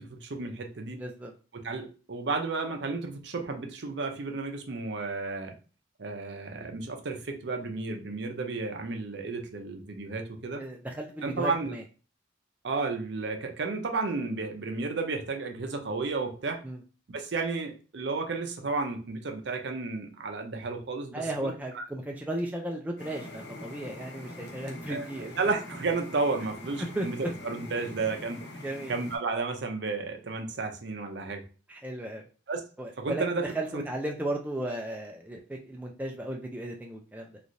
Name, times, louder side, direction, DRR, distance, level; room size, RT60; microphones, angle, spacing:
voice 1, 0.0-1.0 1.5-5.5 6.0-10.6 11.2-11.8 12.6-16.6 17.1-21.8 24.9-28.4 28.9-31.4 32.5-32.6 33.0-33.5 33.7-33.8, right 3 dB, 65° right, 5 dB, 0.6 m, -32 dB
voice 2, 1.0-1.3 10.6-11.8 16.6-16.8 21.1-25.3 26.9-27.3 28.6-29.0 31.7-32.2 32.8-33.2 33.5-37.4, right 1 dB, 10° right, 1 dB, 0.3 m, -35 dB
sound 1, 23.0-29.2, left 1 dB, 65° left, 0.8 m, -44 dB
3.1 x 2.4 x 2.6 m, 0.36 s
head